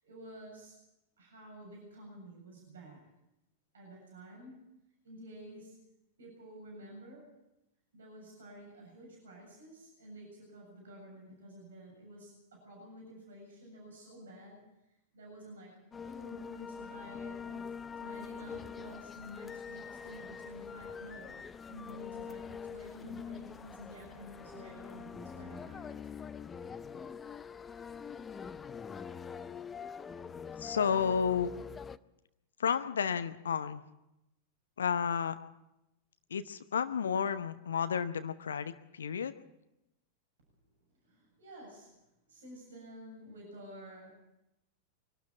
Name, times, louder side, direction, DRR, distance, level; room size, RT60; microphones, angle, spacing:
voice 1, 0.0-0.8 1.2-3.0 3.7-4.6 5.0-5.8 6.2-7.3 7.9-14.6 15.1-26.1 41.0-42.0 42.3-44.1, equal, 65° right, -1 dB, 7.4 m, -51 dB
sound 1, 15.9-32.0, left 6 dB, 20° left, 0.6 m, -44 dB
voice 2, 30.6-31.5 32.6-33.8 34.8-35.4 36.3-39.3, left 7 dB, 65° left, 12 dB, 0.8 m, -31 dB
24.5 x 12.5 x 8.5 m, 0.92 s
figure-of-eight pair, 90°, 0 cm